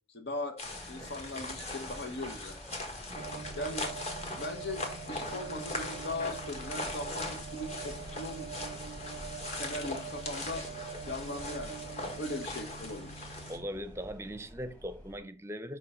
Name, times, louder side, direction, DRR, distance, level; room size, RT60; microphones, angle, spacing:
voice 1, 0.1-0.6 0.9-2.6 3.5-3.9 4.4-8.5 9.5-10.7 11.1-13.3, left 2 dB, 75° left, 1.1 m, -39 dB
sound 1, 0.6-13.6, left 2 dB, 35° left, 1.4 m, -41 dB
sound 2, 0.6-15.2, equal, 10° left, 1.3 m, -49 dB
voice 2, 3.1-3.6 13.5-15.8, equal, 15° right, 0.6 m, -40 dB
sound 3, 3.1-13.7, right 7 dB, 90° right, 0.4 m, -45 dB
5.5 x 5.5 x 5.6 m
head